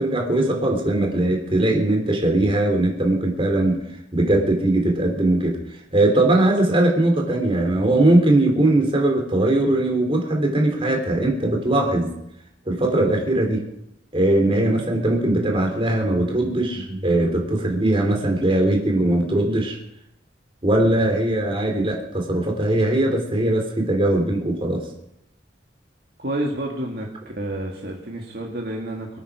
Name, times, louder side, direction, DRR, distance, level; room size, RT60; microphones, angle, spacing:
voice 1, 0.0-3.8 4.1-5.6 5.9-12.1 12.7-13.6 14.1-19.8 20.6-24.8, right 1 dB, 30° right, 1 dB, 3.2 m, -20 dB
voice 2, 26.2-27.1 27.4-29.1, right 1 dB, 60° right, -1 dB, 2.0 m, -29 dB
23.0 x 9.2 x 4.9 m, 0.81 s
head